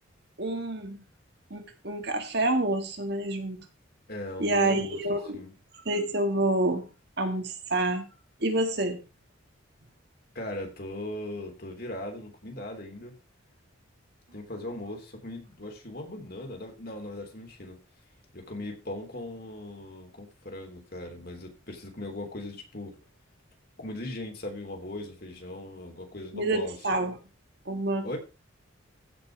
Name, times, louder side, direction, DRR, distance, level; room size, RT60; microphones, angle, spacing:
voice 1, 0.4-1.0 1.5-3.7 4.4-5.4 5.9-6.9 7.2-8.1 8.4-9.0 26.3-27.2 27.7-28.2, right 2 dB, 55° right, 6 dB, 1.8 m, -28 dB
voice 2, 4.1-5.0 5.3-5.5 10.3-13.1 14.3-17.8 18.3-22.9 23.8-27.0 28.0-28.2, left 1 dB, 50° left, 3 dB, 3.3 m, -39 dB
15.5 x 5.4 x 5.0 m, 0.30 s
head